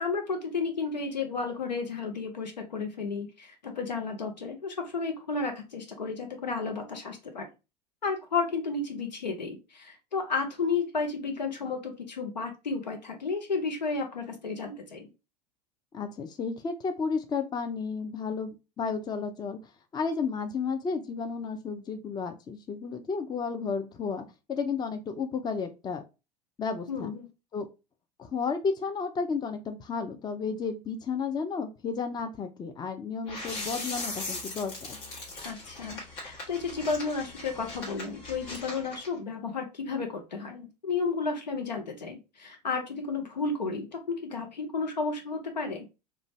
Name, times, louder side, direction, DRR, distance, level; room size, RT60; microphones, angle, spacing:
voice 1, 0.0-7.5 8.0-15.1 26.9-27.3 35.4-45.9, left 4 dB, 90° left, 4 dB, 0.6 m, -32 dB
voice 2, 15.9-19.6 19.9-26.0 26.6-27.1 27.5-27.7 28.2-35.0, left 5 dB, 20° left, 7 dB, 0.5 m, -32 dB
sound 1, 33.3-39.1, left 2 dB, 60° left, 1.3 m, -39 dB
2.5 x 2.3 x 3.0 m, 0.27 s
figure-of-eight pair, 80°, 21 cm